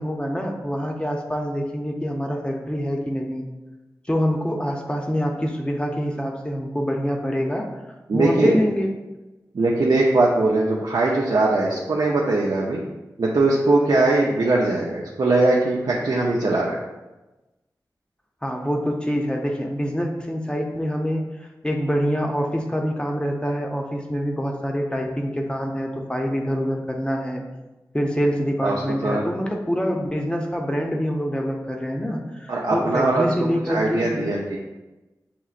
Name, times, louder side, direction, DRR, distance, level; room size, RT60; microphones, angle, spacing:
voice 1, 0.0-3.4 4.1-7.7 8.1-8.9 18.4-27.4 27.9-34.2, equal, 15° left, 1 dB, 0.5 m, -25 dB
voice 2, 8.1-8.6 9.5-12.8 13.2-16.8 28.6-29.2 32.5-33.3 33.7-34.6, right 2 dB, 85° right, -3 dB, 0.6 m, -20 dB
7.0 x 2.9 x 2.4 m, 1.1 s
wide cardioid pair, 90°, 7 cm